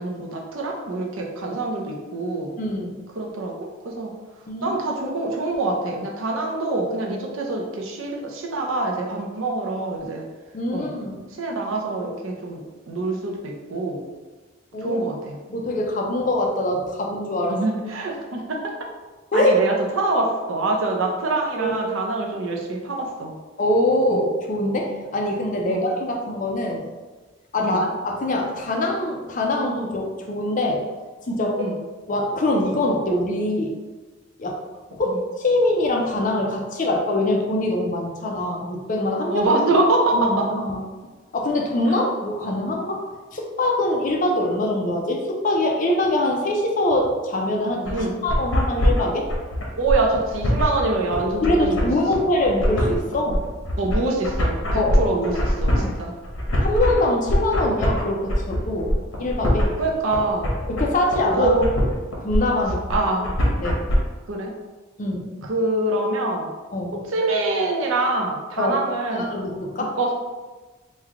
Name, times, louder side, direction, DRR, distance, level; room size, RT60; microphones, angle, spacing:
voice 1, 0.0-2.5 3.2-4.1 4.6-10.3 10.7-10.9 11.4-14.0 14.8-15.4 17.5-18.7 19.3-23.3 24.1-24.2 25.7-25.8 27.6-27.8 31.6-31.7 39.3-40.5 41.9-42.0 47.9-48.1 49.7-51.9 52.2-52.3 53.8-56.1 59.8-60.5 61.3-61.7 62.9-63.3 64.3-64.5 65.4-66.5 67.1-69.3 70.0-70.1, right 2 dB, 80° right, 0 dB, 0.6 m, -25 dB
voice 2, 2.6-3.1 4.5-4.8 10.5-11.2 14.7-15.0 15.5-17.6 19.3-19.6 21.6-21.7 23.6-26.9 27.5-30.8 31.2-31.7 32.1-33.7 34.4-34.6 34.9-39.5 40.1-40.8 41.3-49.3 51.4-53.4 54.7-55.0 55.7-55.9 56.6-59.7 60.7-61.5 62.2-62.9 63.6-63.9 65.0-65.3 66.7-67.0 68.6-68.8 69.1-70.0, left 1 dB, 40° left, 1 dB, 0.5 m, -23 dB
sound 1, 47.8-64.0, equal, 75° left, 0.9 m, -23 dB
3.1 x 2.3 x 3.6 m, 1.3 s
head